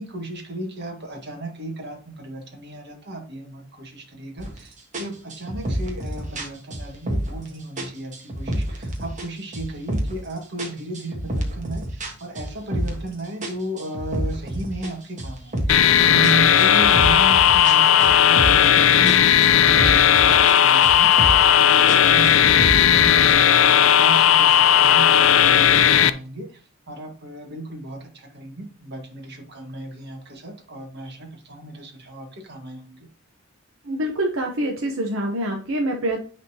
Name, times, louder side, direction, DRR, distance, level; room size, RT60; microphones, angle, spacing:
voice 1, 0.0-26.6 26.9-33.1, right 2 dB, 55° right, 2 dB, 1.7 m, -35 dB
sound 1, 4.4-4.6 4.9-7.5 7.8-9.3 9.5-10.3 10.6-13.1 13.4-15.9 16.2-18.8 19.1-20.6 20.8-21.5 21.9-23.3, right 1 dB, 40° right, 1.4 m, -29 dB
sound 2, 15.7-26.1, left 9 dB, 80° left, 0.5 m, -15 dB
voice 2, 33.8-36.2, right 1 dB, 80° right, 1 dB, 1.1 m, -25 dB
9.7 x 4.1 x 2.9 m, 0.39 s
head